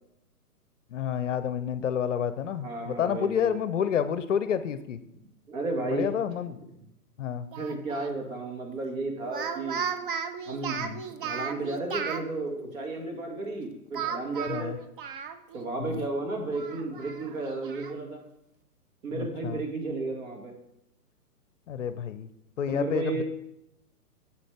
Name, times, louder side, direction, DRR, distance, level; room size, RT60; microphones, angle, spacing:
voice 1, 0.9-5.0 5.9-6.6 7.2-7.5 10.8-11.0 14.5-14.8 15.8-16.0 19.1-19.6 21.7-22.3 22.6-23.2, left 8 dB, 50° left, 13 dB, 0.6 m, -29 dB
voice 2, 2.6-3.5 5.5-6.0 7.6-9.9 10.5-14.8 15.5-18.2 19.0-20.5 22.7-23.2, right 3 dB, 60° right, 1 dB, 2.5 m, -33 dB
Speech, 7.5-8.1 9.2-12.2 13.9-15.7 16.0-16.1 16.5-17.9, right 7 dB, 35° right, 0.6 m, -35 dB
7.5 x 7.0 x 3.5 m, 0.81 s
figure-of-eight pair, 125°, 47 cm